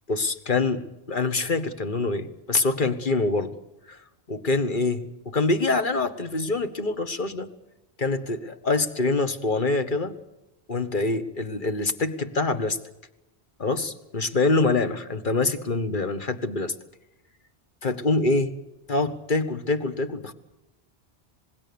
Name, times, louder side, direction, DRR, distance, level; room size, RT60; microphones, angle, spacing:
voice 1, 0.1-3.6 3.9-4.0 4.3-7.5 8.0-10.2 10.7-12.8 13.6-16.7 17.8-18.5 18.9-20.3, left 3 dB, 50° left, 10 dB, 1.7 m, -25 dB
27.0 x 20.0 x 7.0 m, 0.92 s
omnidirectional pair, 1.1 m